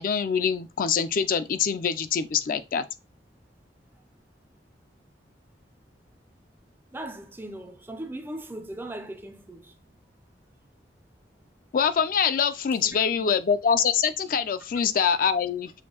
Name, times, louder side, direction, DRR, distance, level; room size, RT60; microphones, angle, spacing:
voice 1, 0.0-2.9 11.7-15.7, left 7 dB, 50° left, 0.4 m, -24 dB
voice 2, 6.9-9.7 12.8-13.3, right 1 dB, 10° right, 0.4 m, -39 dB
6.4 x 2.6 x 2.8 m
head